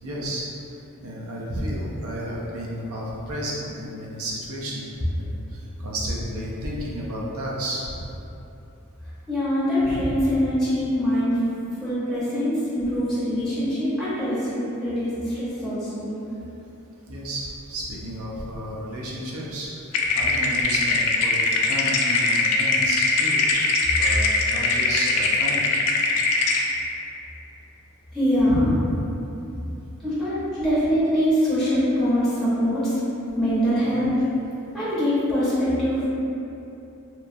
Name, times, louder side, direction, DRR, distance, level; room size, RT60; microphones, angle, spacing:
voice 1, 0.0-0.5 1.0-4.9 5.1-8.0 9.8-10.2 17.1-19.8 20.1-23.4 23.9-25.7 28.5-28.8 33.8-34.0, right 1 dB, 75° right, -4 dB, 0.5 m, -32 dB
voice 2, 9.3-16.2 28.1-28.7 30.0-33.0 33.3-34.1 34.7-36.1, equal, ahead, -13 dB, 0.6 m, -23 dB
sound 1, 19.9-26.6, left 3 dB, 85° left, 0.3 m, -21 dB
2.9 x 2.3 x 2.5 m, 2.9 s
head